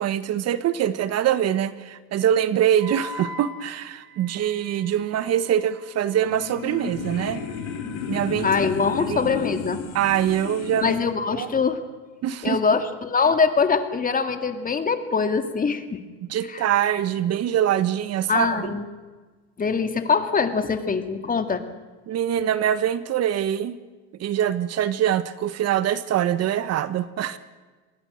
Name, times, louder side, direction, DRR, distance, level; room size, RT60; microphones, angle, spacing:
voice 1, 0.0-7.4 8.1-8.5 9.1-9.3 9.9-11.0 11.3-11.5 12.2-12.6 16.3-18.7 22.1-23.8 24.2-27.4, right 10 dB, 45° right, 13 dB, 1.2 m, -24 dB
Wind instrument woodwind instrument, 2.8-8.9, left 1 dB, 70° right, 3.9 m, -43 dB
sound 1, 6.1-11.0, left 6 dB, 70° left, 4.6 m, -32 dB
voice 2, 8.4-9.8 10.8-11.8 12.4-16.0 16.5-16.6 18.3-18.8 19.6-21.6, left 5 dB, 25° left, 7 dB, 2.4 m, -23 dB
26.5 x 21.0 x 6.4 m, 1.3 s
supercardioid pair, 100°, 36 cm